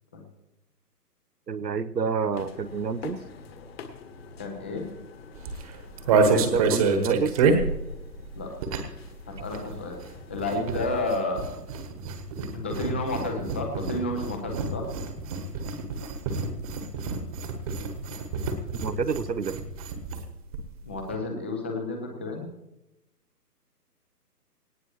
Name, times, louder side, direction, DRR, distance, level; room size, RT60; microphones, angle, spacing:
voice 1, 1.5-3.2 6.2-7.4 18.8-19.6, right 6 dB, 80° right, 16 dB, 1.1 m, -28 dB
sound 1, 2.3-11.1, left 5 dB, 40° left, 1.7 m, -46 dB
voice 2, 4.4-4.8 8.3-8.5 9.3-9.9 10.3-11.4 12.5-14.8 20.8-22.5, left 2 dB, 10° left, 3 dB, 0.6 m, -31 dB
sound 2, 5.4-9.1 9.3-20.3 20.5-20.6 20.8-21.2, right 4 dB, 20° right, 1.3 m, -28 dB
19.0 x 18.0 x 3.1 m, 0.94 s
figure-of-eight pair, 140°, 48 cm